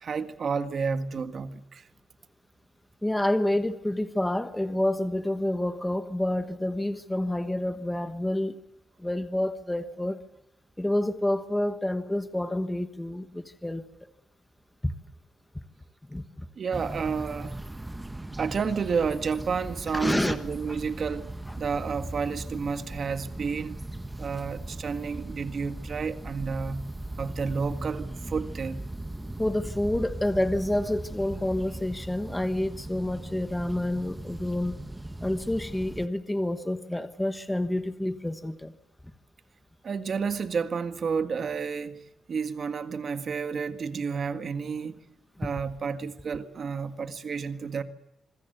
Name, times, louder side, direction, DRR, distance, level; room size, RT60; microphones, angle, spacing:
voice 1, 0.0-1.8 16.6-17.6 18.4-21.3 21.6-23.8 24.2-26.8 27.2-28.8 39.8-42.0 42.3-45.0 45.4-47.8, right 5 dB, 40° right, 1.8 m, -31 dB
voice 2, 3.0-8.6 9.0-10.2 10.8-13.8 14.8-14.9 16.1-16.5 19.9-20.4 21.5-21.6 29.4-34.8 35.2-38.7, left 1 dB, 5° left, 1.2 m, -28 dB
sound 1, 16.7-36.1, right 1 dB, 10° right, 1.0 m, -38 dB
26.5 x 21.5 x 8.1 m
wide cardioid pair, 165°, 0 cm